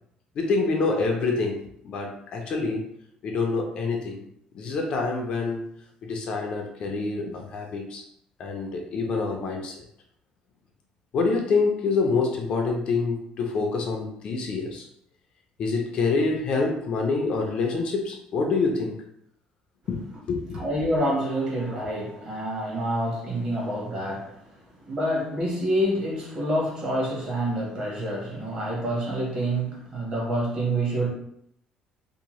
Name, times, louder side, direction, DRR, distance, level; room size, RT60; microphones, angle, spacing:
voice 1, 0.4-2.9 3.2-4.2 4.5-5.7 6.0-8.0 8.4-9.9 11.1-14.9 15.6-18.9 19.9-20.6, left 4 dB, 45° left, 2 dB, 0.4 m, -26 dB
voice 2, 20.5-24.4 24.8-31.1, right 1 dB, 35° right, -4 dB, 1.0 m, -27 dB
2.7 x 2.1 x 3.0 m, 0.71 s
cardioid pair, 175°, 2 cm